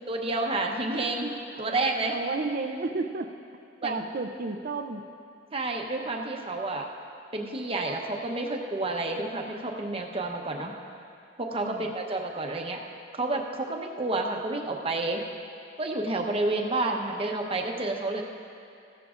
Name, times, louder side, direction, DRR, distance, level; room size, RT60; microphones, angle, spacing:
voice 1, 0.1-1.3 1.6-2.1 3.8-4.0 5.5-6.9 7.3-10.7 11.4-12.8 13.1-15.2 15.8-18.2, right 2 dB, 30° right, 1 dB, 0.9 m, -30 dB
voice 2, 2.1-3.4 3.8-5.1 11.6-11.9, right 3 dB, 50° right, 7 dB, 0.5 m, -32 dB
15.5 x 13.0 x 2.5 m, 2.6 s
head